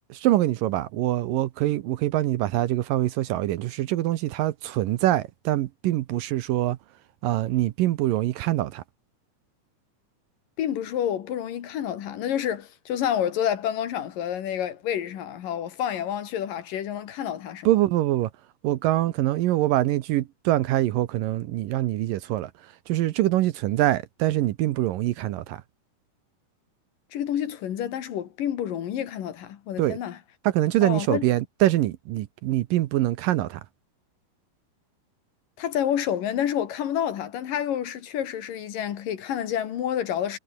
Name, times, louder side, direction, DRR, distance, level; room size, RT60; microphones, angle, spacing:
voice 1, 0.1-6.8 7.2-8.8 17.7-18.3 18.6-22.5 22.9-25.6 29.8-30.0 30.4-33.6, right 15 dB, 75° right, 2.3 m, -24 dB
voice 2, 10.6-17.7 27.1-30.2 30.8-31.3 35.6-40.4, left 10 dB, 65° left, 3.3 m, -29 dB
omnidirectional pair, 4.4 m